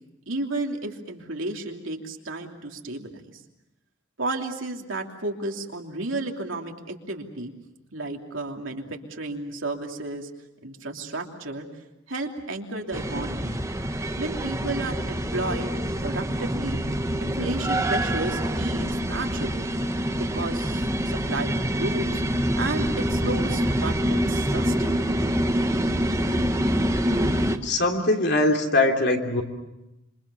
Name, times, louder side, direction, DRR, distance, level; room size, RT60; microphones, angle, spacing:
voice 1, 0.3-3.4 4.2-7.5 7.9-10.3 10.6-11.7 12.1-13.6 14.2-15.7 16.0-16.8 17.2-19.7 20.1-22.2 22.5-25.1, right 2 dB, 75° right, 2 dB, 3.0 m, -32 dB
sound 1, 12.9-27.6, equal, 15° right, 1.3 m, -26 dB
voice 2, 27.6-29.4, left 2 dB, 55° left, 2 dB, 3.1 m, -22 dB
27.5 x 25.5 x 7.1 m, 0.94 s
head